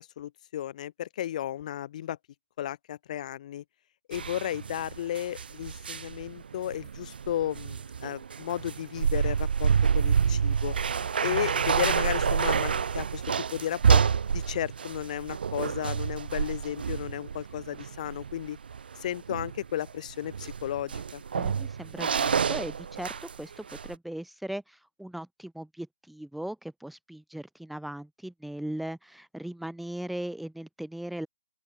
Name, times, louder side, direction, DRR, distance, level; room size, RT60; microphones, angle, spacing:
voice 1, 0.0-2.2 2.6-3.6 4.1-10.7 11.2-13.2 13.5-14.0 14.3-18.6 19.0-21.2, left 11 dB, 50° left, 1.7 m, -34 dB
sound 1, 4.1-23.4 23.7-23.9, right 6 dB, 75° right, 0.4 m, -28 dB
voice 2, 21.3-31.3, right 1 dB, ahead, 1.1 m, -38 dB
open air
hypercardioid pair, 145°, 5 cm